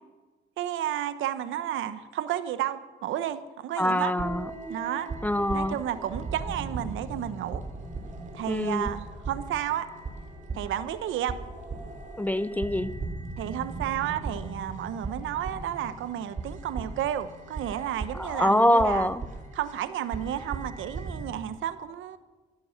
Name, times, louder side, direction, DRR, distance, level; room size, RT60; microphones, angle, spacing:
voice 1, 0.6-4.1 4.7-5.1 5.5-7.6 8.3-9.9 10.5-11.4 13.4-19.1 19.5-22.2, right 11 dB, 80° right, 12 dB, 0.9 m, -32 dB
voice 2, 3.8-4.5 5.2-5.8 8.5-8.9 12.2-12.9 18.2-19.2, left 1 dB, 10° left, 15 dB, 0.5 m, -24 dB
sound 1, 4.2-21.3, right 3 dB, 40° right, 2.9 m, -38 dB
14.0 x 11.0 x 5.8 m, 1.3 s
cardioid pair, 90°, 20 cm